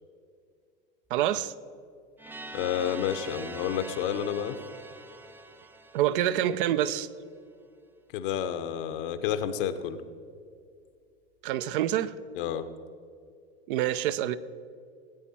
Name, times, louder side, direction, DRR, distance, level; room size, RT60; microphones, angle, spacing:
voice 1, 1.1-1.5 5.9-7.1 11.4-12.1 13.7-14.4, right 12 dB, 60° right, 0.7 m, -26 dB
sound 1, 2.2-7.0, right 3 dB, 5° right, 0.5 m, -44 dB
voice 2, 2.5-4.6 8.1-10.0 12.3-12.7, left 9 dB, 60° left, 1.0 m, -30 dB
18.0 x 8.9 x 4.3 m
hypercardioid pair, 90°, 30 cm